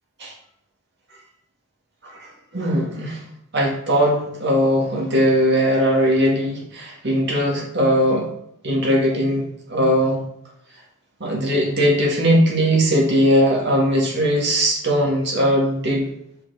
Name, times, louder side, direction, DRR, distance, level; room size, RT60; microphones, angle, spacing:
voice 1, 2.5-3.2 3.5-8.3 8.6-10.2 11.2-16.0, equal, 50° right, -3 dB, 2.0 m, -19 dB
5.9 x 5.2 x 4.0 m, 0.75 s
head